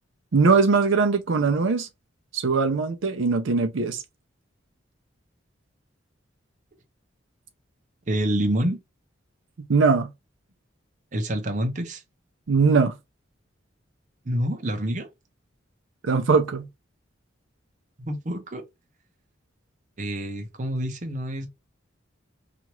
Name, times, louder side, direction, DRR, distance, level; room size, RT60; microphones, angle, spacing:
voice 1, 0.3-1.9 2.3-4.0 9.7-10.1 12.5-13.0 16.0-16.7, right 4 dB, 80° right, 0.5 m, -21 dB
voice 2, 8.1-8.8 11.1-12.0 14.3-15.1 18.0-18.6 20.0-21.5, right 1 dB, 40° right, 0.7 m, -27 dB
2.9 x 2.5 x 3.0 m
head